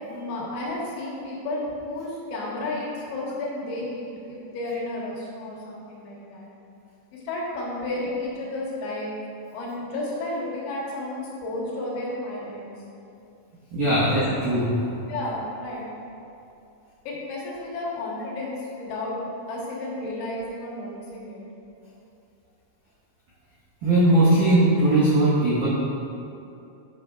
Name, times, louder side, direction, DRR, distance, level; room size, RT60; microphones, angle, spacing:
voice 1, 0.0-6.5 7.1-9.1 9.5-12.7 14.0-14.1 15.1-15.9 17.1-19.2 19.5-21.5, left 2 dB, 75° left, -5 dB, 3.5 m, -32 dB
voice 2, 13.7-14.7 23.8-25.7, right 1 dB, 90° right, -10 dB, 1.8 m, -19 dB
9.3 x 6.7 x 2.3 m, 2.7 s
omnidirectional pair, 5.7 m